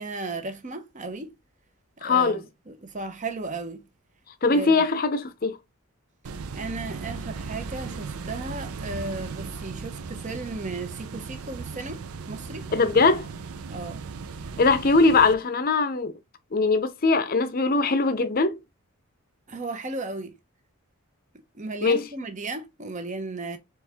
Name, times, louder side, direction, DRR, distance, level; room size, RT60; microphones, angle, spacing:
voice 1, 0.0-1.3 2.0-3.8 4.5-4.8 6.5-12.7 13.7-14.0 19.5-20.4 21.5-23.6, right 3 dB, 35° right, 0.8 m, -35 dB
voice 2, 2.0-2.4 4.4-5.6 12.7-13.3 14.6-16.1 16.5-18.6 21.8-22.0, left 3 dB, 40° left, 0.6 m, -21 dB
sound 1, 6.2-15.3, right 4 dB, 80° right, 0.5 m, -37 dB
4.4 x 3.1 x 3.5 m
head